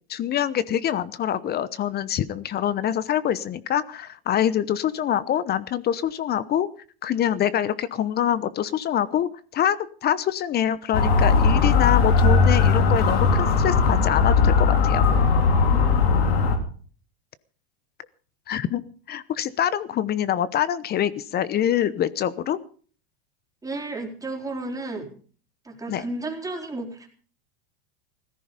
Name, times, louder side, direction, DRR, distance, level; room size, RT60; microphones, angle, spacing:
voice 1, 0.1-6.7 7.0-15.1 18.5-18.8 19.1-22.6 25.9-26.0, left 10 dB, 30° left, 17 dB, 0.9 m, -25 dB
Motor vehicle (road) / Siren, 10.9-16.6, left 4 dB, 80° left, 3.7 m, -19 dB
voice 2, 15.6-16.1 23.6-25.1 25.6-27.1, right 2 dB, 10° right, 0 dB, 4.2 m, -33 dB
16.5 x 14.0 x 5.2 m, 0.43 s
supercardioid pair, 120°, 31 cm